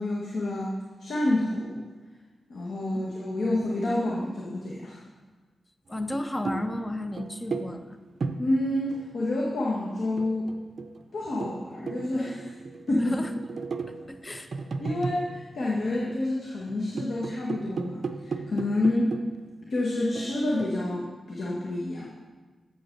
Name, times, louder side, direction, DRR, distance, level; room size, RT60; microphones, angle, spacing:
voice 1, 0.0-1.8 2.5-5.0 8.4-10.5 11.1-12.5 12.9-13.2 14.8-19.1 19.7-22.1, left 1 dB, 65° left, -4 dB, 1.2 m, -28 dB
voice 2, 5.9-8.0 13.0-13.3 13.9-14.5, left 1 dB, 15° left, 8 dB, 0.4 m, -33 dB
sound 1, 6.0-9.5 10.0-16.2 16.6-19.6 20.1-20.8, right 4 dB, 50° right, 0.4 m, -36 dB
7.8 x 5.2 x 6.5 m, 1.3 s
wide cardioid pair, 140°, 0 cm